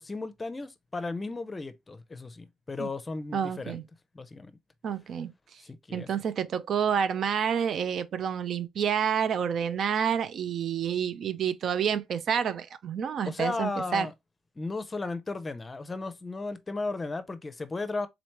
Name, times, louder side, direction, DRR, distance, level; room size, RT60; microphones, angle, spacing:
voice 1, 0.0-3.8 4.1-4.5 5.6-6.1 13.2-14.1 14.6-18.1, left 3 dB, 25° left, 0.6 m, -35 dB
voice 2, 3.3-3.8 4.8-5.6 5.9-14.1, right 8 dB, 60° right, 0.4 m, -29 dB
3.9 x 3.1 x 3.0 m
cardioid pair, 90°, 0 cm